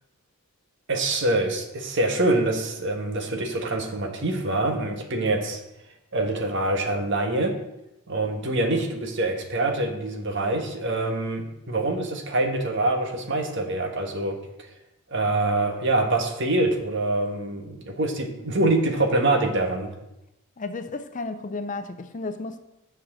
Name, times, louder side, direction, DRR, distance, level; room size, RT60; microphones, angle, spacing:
voice 1, 0.9-5.6 6.1-7.5 8.1-14.4 15.1-19.9, right 2 dB, 55° right, 1.5 m, -25 dB
voice 2, 20.6-22.6, left 3 dB, 35° left, 0.6 m, -33 dB
7.5 x 6.5 x 7.6 m
head